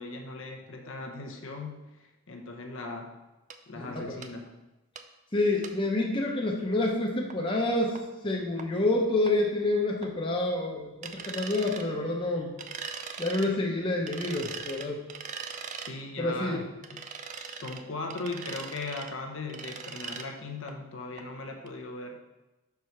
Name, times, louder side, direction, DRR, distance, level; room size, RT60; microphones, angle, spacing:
voice 1, 0.0-3.2 3.7-4.5 15.8-22.2, left 3 dB, 65° left, 2 dB, 0.8 m, -39 dB
sound 1, 3.5-3.6 4.2-4.3 5.0-5.1 5.6-5.7 7.3-7.4 8.0-8.1 8.6-8.7 9.3-9.4 10.0-10.1 11.0-11.9 12.6-13.5 14.1-15.9 16.8-17.8 18.1-19.1 19.5-20.3 20.7-20.8 21.2-21.3 21.7-21.8, right 6 dB, 35° right, 0.4 m, -40 dB
voice 2, 3.7-4.2 5.3-8.0 8.2-12.5 13.2-15.0 16.2-16.6, left 2 dB, 25° left, -1 dB, 0.8 m, -28 dB
5.4 x 4.8 x 5.8 m, 1.1 s
head